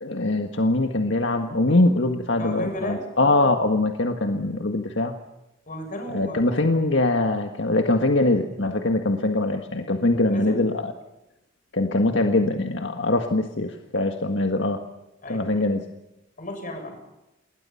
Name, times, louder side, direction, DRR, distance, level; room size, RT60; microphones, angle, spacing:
voice 1, 0.0-5.2 6.1-10.9 11.7-14.8 15.3-15.8, left 2 dB, 70° left, 5 dB, 1.8 m, -22 dB
voice 2, 2.4-3.1 5.7-6.5 10.3-10.6 15.2-15.7 16.4-17.0, left 1 dB, 45° left, 5 dB, 7.3 m, -34 dB
29.0 x 21.5 x 5.8 m, 0.93 s
head